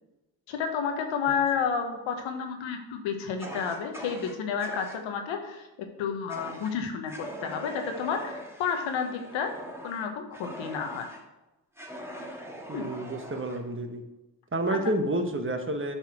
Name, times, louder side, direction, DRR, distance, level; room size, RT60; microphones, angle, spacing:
voice 1, 0.5-5.7 6.0-7.1 7.4-9.5 9.8-11.1 12.7-12.9 14.7-14.8, left 6 dB, 80° left, 5 dB, 1.2 m, -30 dB
Fire, 3.4-5.0 6.3-6.7 7.1-11.2 11.8-13.6, equal, 5° right, 1.8 m, -42 dB
voice 2, 12.7-14.0 14.5-16.0, right 1 dB, 25° right, 6 dB, 1.3 m, -30 dB
8.0 x 4.2 x 6.0 m, 1.0 s
supercardioid pair, 55°, 46 cm